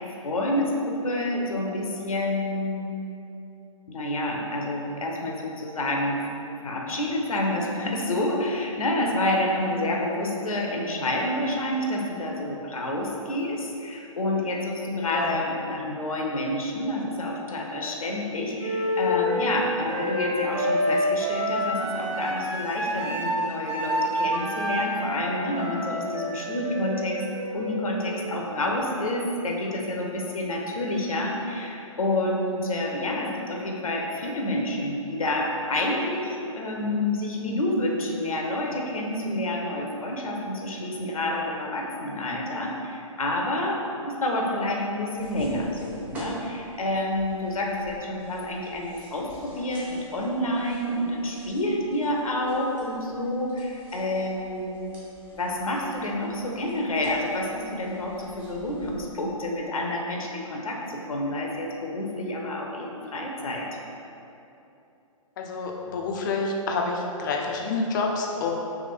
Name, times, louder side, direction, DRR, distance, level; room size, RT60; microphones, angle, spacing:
voice 1, 0.1-3.0 3.9-27.2 27.5-43.8 44.1-55.0 55.3-63.7, left 1 dB, 75° left, 0 dB, 0.7 m, -28 dB
Wind instrument woodwind instrument, 18.6-28.4, equal, 50° right, 1.1 m, -28 dB
sound 1, 45.2-59.1, equal, 10° right, 0.7 m, -47 dB
voice 2, 65.4-68.5, left 3 dB, 35° left, 0 dB, 0.4 m, -28 dB
3.3 x 3.2 x 3.6 m, 2.8 s
figure-of-eight pair, 135°, 18 cm